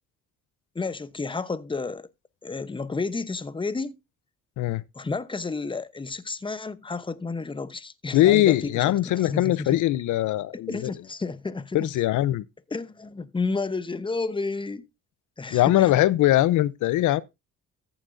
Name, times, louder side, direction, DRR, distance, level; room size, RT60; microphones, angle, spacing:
voice 1, 0.7-2.1 2.4-3.9 4.9-9.8 10.7-11.9 12.7-14.9 15.4-15.9, left 3 dB, 15° left, 0.8 m, -31 dB
voice 2, 8.1-10.9 11.7-12.5 15.5-17.2, left 14 dB, 80° left, 0.6 m, -21 dB
14.0 x 7.2 x 2.6 m
cardioid pair, 90°, 30 cm